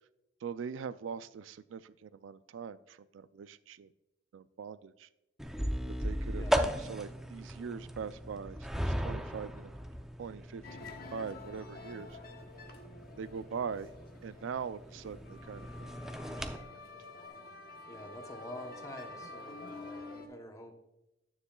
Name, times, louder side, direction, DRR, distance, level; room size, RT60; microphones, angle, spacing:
voice 1, 0.4-3.9 4.3-5.1 5.9-9.8 10.2-12.2 13.2-13.9 14.2-15.9 16.3-16.5, right 6 dB, 85° right, 16 dB, 0.4 m, -42 dB
sound 1, 5.4-16.6, equal, 5° right, 0.5 m, -37 dB
sound 2, 10.6-20.3, left 3 dB, 55° left, 1.0 m, -49 dB
voice 2, 17.9-20.7, left 1 dB, 20° left, 4 dB, 0.8 m, -47 dB
9.6 x 9.6 x 2.3 m, 0.91 s
head